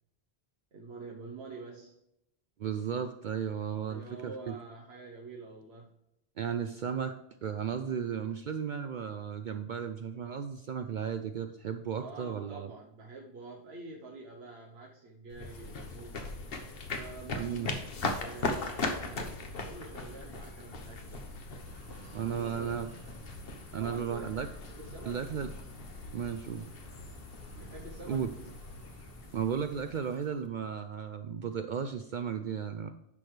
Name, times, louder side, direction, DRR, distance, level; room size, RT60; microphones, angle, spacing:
voice 1, 0.7-2.0 3.9-5.9 12.0-16.3 16.9-19.3 19.6-21.3 22.3-22.7 23.8-24.3 24.7-25.3 27.6-28.3, right 3 dB, 75° right, 0 dB, 1.2 m, -47 dB
voice 2, 2.6-4.5 6.4-7.2 7.4-12.7 17.4-17.7 22.1-22.9 23.7-24.5 25.1-25.5 26.1-26.7 28.1-28.3 29.3-32.9, right 7 dB, 60° right, 8 dB, 0.6 m, -34 dB
sound 1, 15.3-30.5, left 3 dB, 65° left, 1.2 m, -39 dB
sound 2, 21.6-29.7, right 1 dB, 15° right, 1.0 m, -55 dB
10.5 x 6.2 x 3.2 m, 0.85 s
omnidirectional pair, 1.1 m